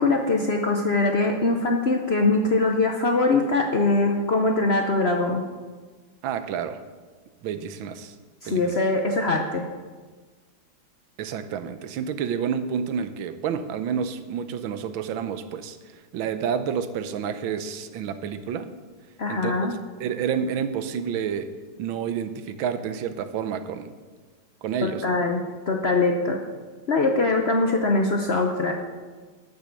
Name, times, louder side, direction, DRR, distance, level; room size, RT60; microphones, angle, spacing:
voice 1, 0.0-5.4 8.4-9.7 19.2-19.7 24.8-26.4 26.9-28.7, left 3 dB, 60° left, 2 dB, 0.6 m, -22 dB
voice 2, 6.2-6.8 7.4-8.1 8.5-8.8 11.2-15.8 16.1-18.7 19.3-19.7 20.0-21.5 21.8-23.9 24.6-25.0, right 7 dB, 80° right, 10 dB, 1.6 m, -29 dB
12.0 x 6.8 x 6.6 m, 1.4 s
omnidirectional pair, 2.2 m